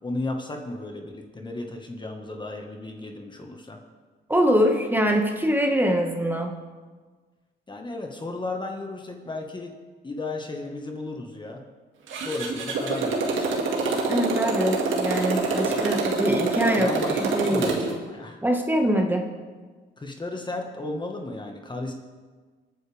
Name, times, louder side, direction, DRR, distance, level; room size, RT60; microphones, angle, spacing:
voice 1, 0.0-3.8 7.7-9.7 10.0-11.6 12.2-13.5 15.7-15.8 16.8-18.4 20.0-21.9, left 2 dB, 25° left, 2 dB, 1.6 m, -34 dB
voice 2, 4.3-6.5 14.1-17.8 18.4-19.2, equal, 10° right, 2 dB, 1.7 m, -24 dB
Motorcycle, 12.1-17.9, right 3 dB, 80° right, 2.1 m, -26 dB
22.5 x 9.6 x 3.5 m, 1.4 s
cardioid pair, 90°, 20 cm